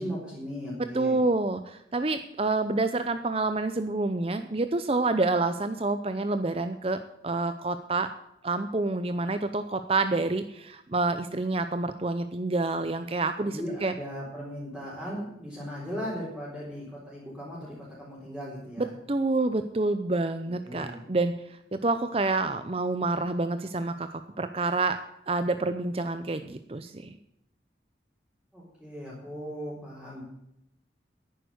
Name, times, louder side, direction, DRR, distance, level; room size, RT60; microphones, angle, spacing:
voice 1, 0.0-1.2 13.4-18.9 20.4-21.0 28.5-30.2, equal, ahead, -10 dB, 4.1 m, -38 dB
voice 2, 0.9-8.1 8.4-13.9 18.8-21.3 21.7-25.0 25.3-27.2, right 3 dB, 30° right, 9 dB, 0.6 m, -28 dB
11.0 x 9.4 x 7.9 m, 0.78 s
head